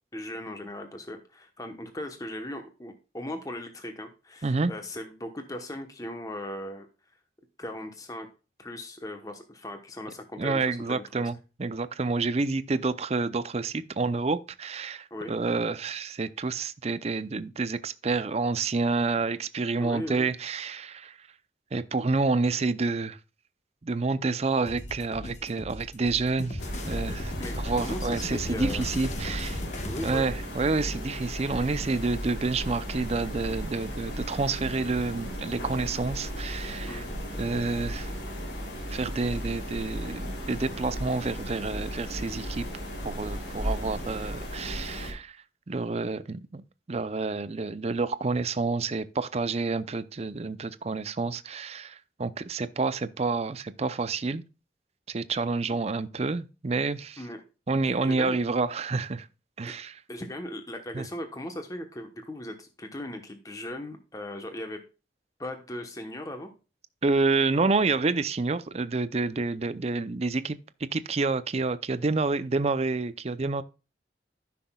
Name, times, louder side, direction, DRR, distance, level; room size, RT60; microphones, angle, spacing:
voice 1, 0.1-6.9 7.6-8.3 8.6-11.3 15.1-15.4 19.8-20.3 27.4-28.8 29.9-30.3 36.8-37.1 57.2-57.4 57.8-58.4 59.7-59.8 60.1-64.8 65.4-66.5, left 1 dB, 20° left, 1.0 m, -38 dB
voice 2, 10.4-21.2 21.7-23.2 23.8-26.6 26.9-29.6 30.0-37.0 37.4-38.1 38.9-42.6 43.0-45.4 45.7-54.4 55.1-57.2 57.7-59.3 59.6-60.0 60.9-61.1 67.0-70.6 70.9-73.6, right 3 dB, 35° right, 0.5 m, -29 dB
sound 1, 24.7-30.3, left 1 dB, 40° left, 1.1 m, -38 dB
sound 2, 26.6-45.1, equal, 75° left, 3.0 m, -35 dB
14.0 x 6.0 x 2.3 m
head